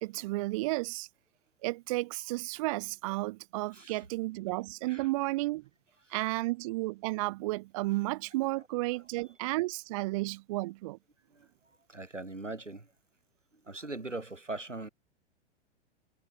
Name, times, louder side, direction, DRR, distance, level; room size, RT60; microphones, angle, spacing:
voice 1, 0.0-1.1 1.6-5.6 6.1-11.0, right 21 dB, 30° right, 0.4 m, -32 dB
voice 2, 11.9-12.9 13.7-14.9, right 2 dB, 90° right, 4.6 m, -40 dB
figure-of-eight pair, 105°, 36 cm